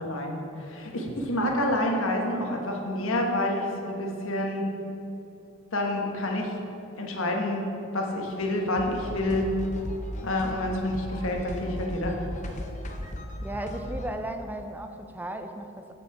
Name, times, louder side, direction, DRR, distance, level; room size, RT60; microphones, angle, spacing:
voice 1, 0.0-4.7 5.7-6.5 7.0-9.5 10.2-12.2, left 1 dB, 65° left, 1 dB, 1.3 m, -28 dB
sound 1, 8.8-14.1, left 1 dB, 35° left, 0.7 m, -36 dB
voice 2, 13.4-15.9, right 1 dB, 10° right, 6 dB, 0.4 m, -35 dB
8.3 x 7.2 x 4.7 m, 2.9 s
head